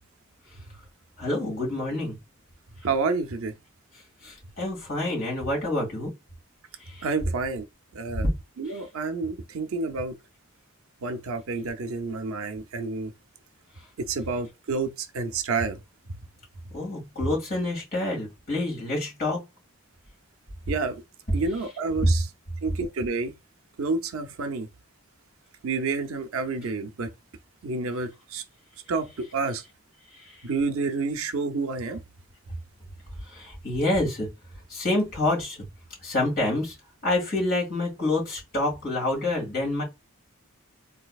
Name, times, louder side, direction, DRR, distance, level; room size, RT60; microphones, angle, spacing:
voice 1, 1.2-2.2 4.2-6.1 6.9-7.1 16.7-19.4 22.0-22.1 33.3-34.3 34.7-35.7 36.0-36.8 37.0-39.8, left 1 dB, 45° left, 1.9 m, -27 dB
voice 2, 2.8-3.5 7.0-7.6 7.9-8.3 8.6-10.1 11.0-13.1 14.1-15.8 20.7-21.0 21.3-22.3 22.6-23.3 23.8-24.7 25.6-27.1 27.6-28.4 28.9-29.6 30.4-32.0, right 4 dB, 75° right, 0.5 m, -29 dB
3.9 x 2.7 x 2.3 m
head